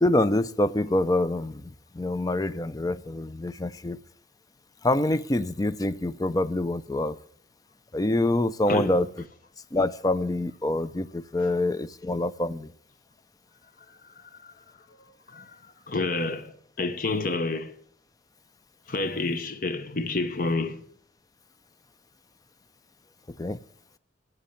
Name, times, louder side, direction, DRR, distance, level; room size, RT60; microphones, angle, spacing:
voice 1, 0.0-1.6 2.0-4.0 4.8-7.2 7.9-9.1 9.7-12.7 23.4-23.6, left 1 dB, 20° left, 0.4 m, -25 dB
voice 2, 8.7-9.0 11.4-11.5 14.2-14.5 15.3-17.7 18.9-20.8, left 3 dB, 45° left, 0.9 m, -29 dB
13.0 x 8.1 x 8.6 m
head